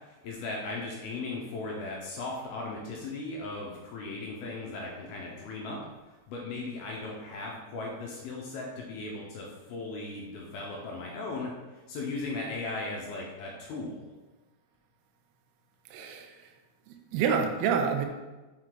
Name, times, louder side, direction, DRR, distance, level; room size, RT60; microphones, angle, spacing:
voice 1, 0.0-5.8 6.1-14.1, left 3 dB, 75° left, -2 dB, 2.4 m, -37 dB
voice 2, 15.9-16.3 17.1-18.1, right 6 dB, 80° right, 4 dB, 2.5 m, -27 dB
6.6 x 4.7 x 3.7 m, 1.1 s
omnidirectional pair, 4.9 m